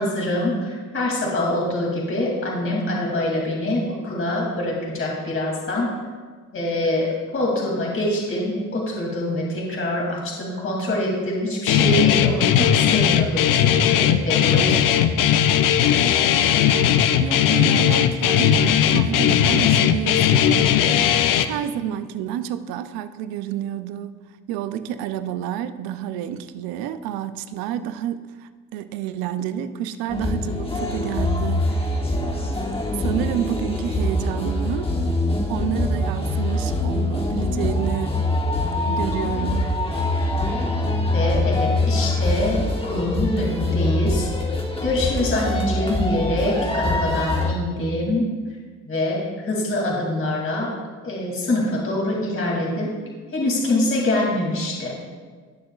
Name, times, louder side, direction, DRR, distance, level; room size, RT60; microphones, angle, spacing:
voice 1, 0.0-5.9 6.5-14.8 15.1-15.2 41.1-44.3 44.8-48.2 48.9-50.8 51.0-52.9 53.3-54.9, left 1 dB, 35° left, -3 dB, 2.6 m, -24 dB
Guitar, 11.7-21.4, left 9 dB, 65° left, 0.6 m, -18 dB
voice 2, 17.2-18.6 18.9-20.8 21.4-24.1 24.5-32.0 33.0-34.9 35.5-38.3 38.9-39.7, right 10 dB, 85° right, 12 dB, 0.6 m, -29 dB
sound 1, 30.1-47.5, left 2 dB, 15° left, 1.3 m, -24 dB
18.5 x 6.5 x 2.4 m, 1.5 s
supercardioid pair, 70°, 35 cm